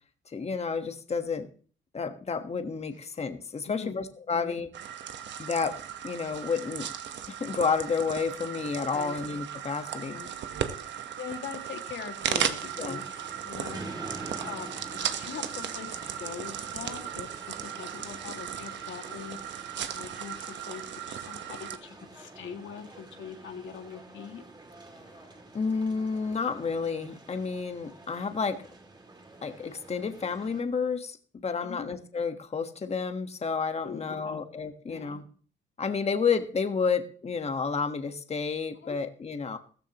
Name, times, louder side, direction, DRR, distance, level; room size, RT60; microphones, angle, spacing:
voice 1, 0.3-1.5 1.9-4.7 5.4-5.8 6.0-6.9 7.3-10.2 12.8-13.0 25.5-28.6 29.4-31.2 31.4-35.2 35.8-39.6, left 5 dB, 30° left, 8 dB, 1.4 m, -30 dB
voice 2, 3.6-4.0 4.3-4.6 8.9-9.2 10.1-10.3 10.8-24.4 31.6-31.9 33.8-34.4 34.9-35.2 38.7-39.0, left 7 dB, 70° left, 5 dB, 2.1 m, -43 dB
sound 1, 4.7-21.8, right 9 dB, 65° right, 1.2 m, -36 dB
sound 2, 12.6-30.6, right 2 dB, 20° right, 2.7 m, -47 dB
15.0 x 14.0 x 3.0 m, 0.42 s
cardioid pair, 90°, 20 cm